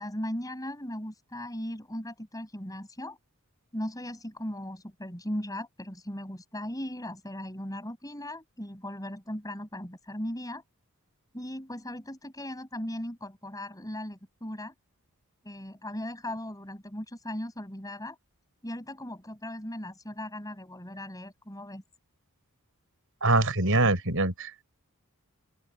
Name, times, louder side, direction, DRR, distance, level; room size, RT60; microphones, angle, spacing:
voice 1, 0.0-3.2 3.7-10.6 11.3-14.7 15.4-18.2 18.6-21.8, left 1 dB, 15° left, 7.7 m, -38 dB
voice 2, 23.2-24.6, right 2 dB, 65° right, 6.8 m, -24 dB
open air
head